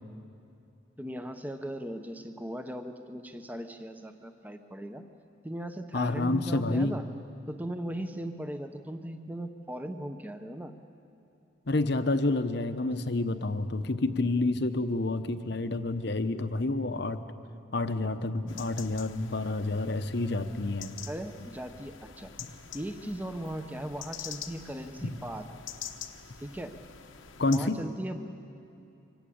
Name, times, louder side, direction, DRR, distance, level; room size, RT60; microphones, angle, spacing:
voice 1, 1.0-5.0 5.4-7.0 7.5-10.7 21.1-22.3 22.7-25.5 26.4-26.7 27.5-28.4, right 1 dB, 10° right, 7 dB, 0.9 m, -38 dB
voice 2, 5.9-7.0 11.7-17.3 17.7-20.9 25.0-25.1 27.4-27.8, left 2 dB, 55° left, 10 dB, 0.9 m, -29 dB
sound 1, 18.5-27.6, left 8 dB, 75° left, 1.1 m, -46 dB
24.5 x 17.5 x 8.6 m, 2.7 s
head